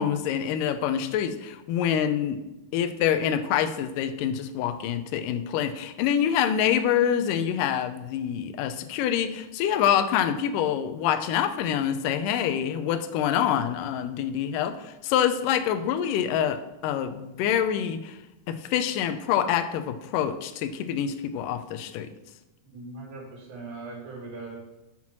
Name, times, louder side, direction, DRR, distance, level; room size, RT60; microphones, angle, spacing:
voice 1, 0.0-2.4 2.7-18.2 18.5-22.1, left 9 dB, 80° left, 10 dB, 2.1 m, -26 dB
voice 2, 22.6-24.6, right 3 dB, 90° right, -4 dB, 4.5 m, -40 dB
7.6 x 5.9 x 5.9 m, 1.0 s
omnidirectional pair, 4.0 m